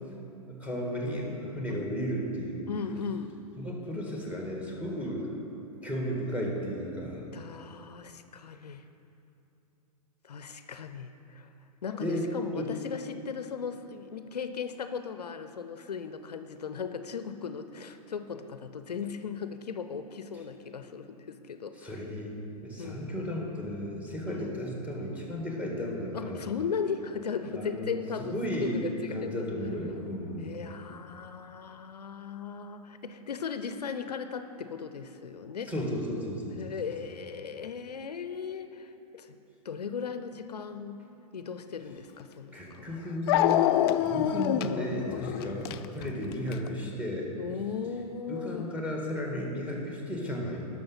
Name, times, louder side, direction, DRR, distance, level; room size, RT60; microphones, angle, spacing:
voice 1, 0.5-2.7 3.6-5.3 5.8-7.2 12.0-12.3 12.6-12.7 21.8-26.4 27.6-27.9 28.2-30.6 35.7-36.7 42.5-43.7 44.0-47.3 48.3-50.6, equal, 5° right, -1 dB, 1.8 m, -34 dB
voice 2, 2.7-3.4 5.0-5.1 7.3-8.9 10.2-11.5 11.8-22.0 22.8-23.1 24.3-24.6 26.1-29.4 30.4-35.7 36.5-39.4 39.6-41.0 41.3-43.0 45.4-45.6 47.4-48.7, left 6 dB, 85° left, 10 dB, 0.6 m, -37 dB
Dog, 42.2-42.3 43.3-46.7, left 12 dB, 40° left, 0.4 m, -26 dB
11.5 x 6.3 x 5.6 m, 2.8 s
hypercardioid pair, 110°, 20 cm